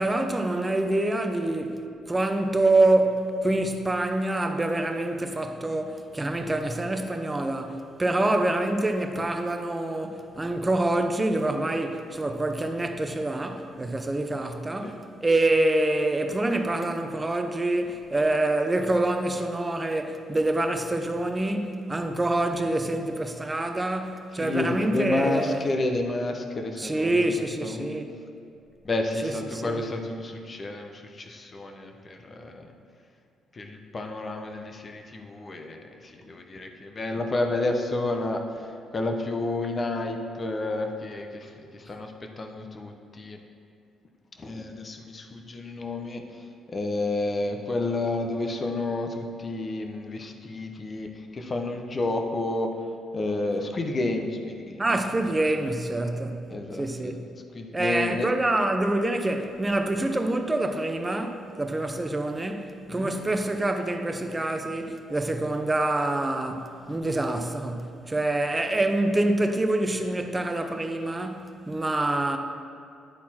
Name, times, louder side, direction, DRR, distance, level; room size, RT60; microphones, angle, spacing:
voice 1, 0.0-1.8 2.0-25.6 26.8-28.1 29.2-29.8 54.8-56.4 56.8-57.2 57.7-72.4, right 2 dB, 20° right, 0.6 m, -26 dB
voice 2, 24.4-28.0 28.8-32.7 33.5-38.7 38.9-43.4 44.4-52.7 53.1-54.8 56.5-57.2 57.5-58.3 62.9-63.1, left 2 dB, 35° left, 0.8 m, -30 dB
10.5 x 4.1 x 4.3 m
cardioid pair, 85°, 0 cm